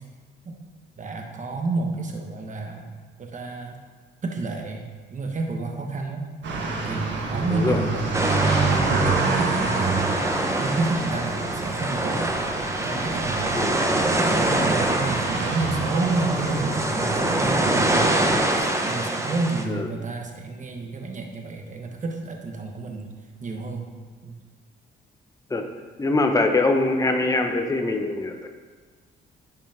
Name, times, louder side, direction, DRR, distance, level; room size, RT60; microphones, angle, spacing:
voice 1, 1.0-2.9 3.2-3.8 4.2-6.2 6.8-10.0 10.6-12.3 12.8-23.1 23.4-23.9 24.2-24.4, right 3 dB, 40° right, 2 dB, 1.3 m, -30 dB
sound 1, 6.4-18.6, right 4 dB, 65° right, 1.4 m, -28 dB
sound 2, 8.1-19.6, right 1 dB, 15° right, 0.9 m, -25 dB
voice 2, 26.0-28.5, left 2 dB, 15° left, 4 dB, 0.8 m, -23 dB
10.5 x 5.3 x 3.6 m, 1.4 s
cardioid pair, 90°, 20 cm